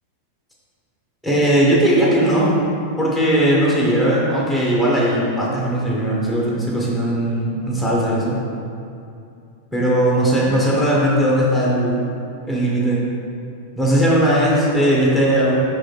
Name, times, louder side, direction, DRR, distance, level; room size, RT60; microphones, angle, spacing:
voice 1, 1.2-2.5 3.0-8.4 9.7-12.0 12.4-13.0 13.8-15.6, right 1 dB, 5° right, -6 dB, 1.4 m, -18 dB
5.4 x 4.9 x 4.1 m, 2.6 s
figure-of-eight pair, 90°, 0 cm